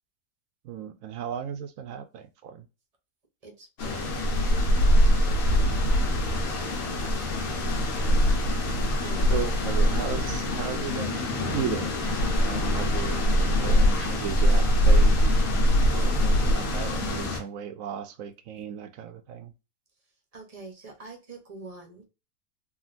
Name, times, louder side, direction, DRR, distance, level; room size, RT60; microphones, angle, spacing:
voice 1, 0.6-2.7 7.8-8.2 9.3-11.9 12.3-15.2 15.9-19.5, right 8 dB, 70° right, 0.9 m, -36 dB
voice 2, 3.4-6.5 8.9-9.5 15.9-16.7 20.3-22.0, right 3 dB, 35° right, 0.6 m, -46 dB
sound 1, 3.8-17.4, equal, 70° left, 1.4 m, -23 dB
3.6 x 2.4 x 2.5 m
omnidirectional pair, 1.6 m